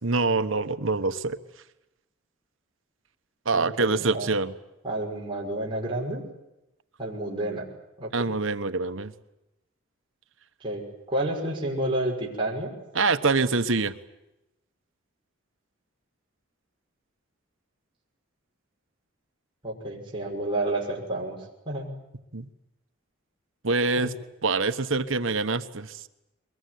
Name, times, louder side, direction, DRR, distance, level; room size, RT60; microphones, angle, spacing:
voice 1, 0.0-1.4 3.4-4.5 8.1-9.1 12.9-13.9 22.3-22.4 23.6-24.1 24.4-26.0, right 3 dB, 75° right, 10 dB, 1.3 m, -25 dB
voice 2, 3.5-4.3 4.8-6.2 7.0-7.6 8.0-8.3 10.6-12.7 19.6-21.4 21.7-21.9 24.0-24.1, right 1 dB, 25° right, -3 dB, 5.9 m, -30 dB
23.0 x 22.0 x 9.5 m, 0.91 s
head